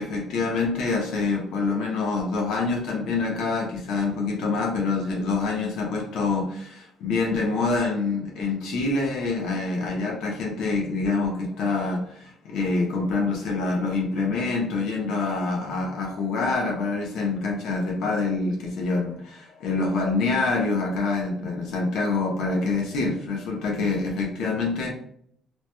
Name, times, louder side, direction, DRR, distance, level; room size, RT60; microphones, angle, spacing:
voice 1, 0.0-24.9, left 3 dB, 80° left, 0.9 m, -26 dB
3.1 x 2.9 x 2.2 m
cardioid pair, 160°, 0 cm